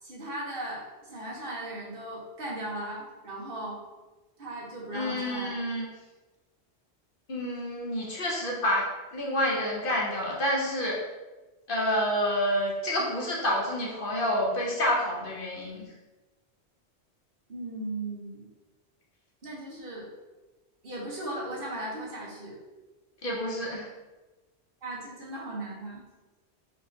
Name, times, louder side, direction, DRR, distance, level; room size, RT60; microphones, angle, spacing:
voice 1, 0.0-3.8 4.4-5.6 17.5-18.5 19.4-20.1 20.8-22.6 24.8-26.0, right 1 dB, 55° right, -4 dB, 1.2 m, -37 dB
voice 2, 4.9-5.9 7.3-11.0 11.7-15.9 23.2-23.9, equal, 55° left, -3 dB, 1.0 m, -28 dB
4.7 x 3.2 x 2.7 m, 1.2 s
omnidirectional pair, 1.1 m